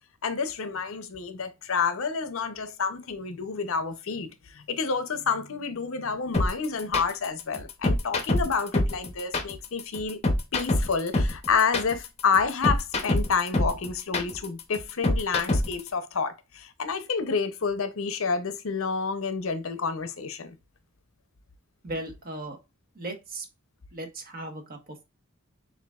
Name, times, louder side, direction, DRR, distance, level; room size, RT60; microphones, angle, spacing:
voice 1, 0.2-10.2 10.5-20.6, left 5 dB, 65° left, 0.6 m, -29 dB
sound 1, 6.3-15.9, left 1 dB, 30° left, 0.7 m, -25 dB
voice 2, 21.8-22.6 22.9-23.5 23.9-25.0, right 2 dB, 45° right, 1.2 m, -37 dB
6.8 x 2.7 x 2.3 m
head